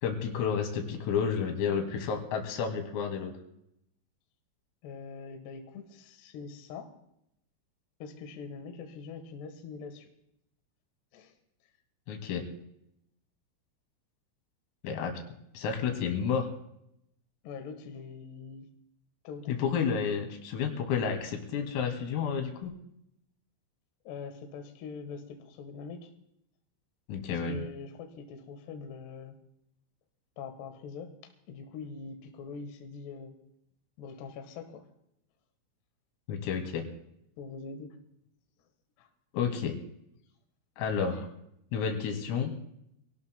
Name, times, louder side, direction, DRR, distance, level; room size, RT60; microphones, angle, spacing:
voice 1, 0.0-3.3 12.1-12.5 14.8-15.2 15.5-16.5 19.5-22.7 27.1-27.6 36.3-36.8 39.3-39.7 40.8-41.3 41.7-42.5, left 6 dB, 90° left, 3 dB, 5.0 m, -31 dB
voice 2, 4.8-6.9 8.0-10.1 11.1-11.3 17.4-18.7 19.2-19.7 24.0-26.1 27.3-29.4 30.4-31.1 31.5-33.4 34.0-34.8 37.4-37.9 39.0-39.1, left 5 dB, 65° left, 5 dB, 3.1 m, -43 dB
25.5 x 18.0 x 2.3 m, 0.77 s
omnidirectional pair, 5.9 m